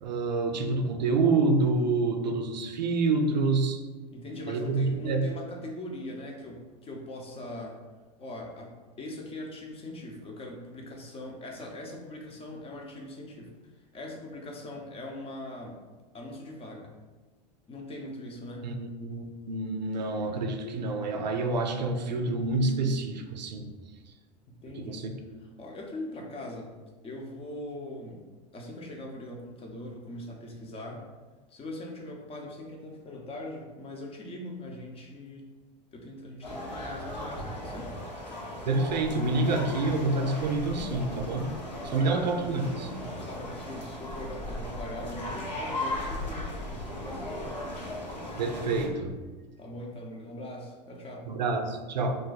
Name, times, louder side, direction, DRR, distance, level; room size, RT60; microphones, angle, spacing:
voice 1, 0.0-3.8 4.5-5.3 18.6-23.7 24.7-25.2 38.7-41.5 41.8-42.9 48.4-49.2 51.3-52.1, right 3 dB, 85° right, 5 dB, 0.4 m, -27 dB
voice 2, 4.1-7.8 8.2-13.5 13.9-15.8 16.1-16.9 17.7-18.7 24.5-25.1 25.4-26.7 27.0-28.2 28.5-31.0 31.5-35.5 35.9-37.9 41.9-42.3 43.3-47.6 49.6-51.3, left 1 dB, 25° left, 1 dB, 0.7 m, -41 dB
sound 1, 36.4-48.9, left 1 dB, 90° left, 0.8 m, -37 dB
2.5 x 2.3 x 3.9 m, 1.3 s
hypercardioid pair, 85°, 21 cm